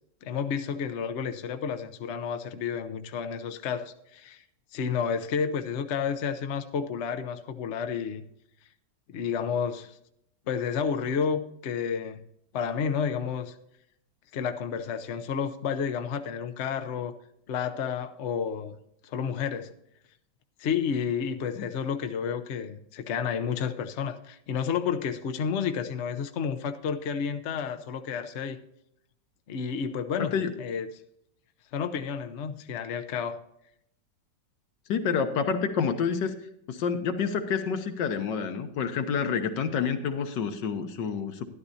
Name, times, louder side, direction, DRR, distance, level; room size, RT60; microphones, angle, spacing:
voice 1, 0.2-4.4 4.7-8.2 9.1-9.9 10.5-12.2 12.5-13.5 14.3-17.1 17.5-18.8 19.0-19.7 20.6-28.6 29.5-30.9 31.7-33.4, left 7 dB, 50° left, 0.9 m, -31 dB
voice 2, 30.2-30.5 34.9-36.3 36.7-41.4, left 6 dB, 85° left, 1.7 m, -28 dB
12.5 x 11.5 x 2.8 m
omnidirectional pair, 1.9 m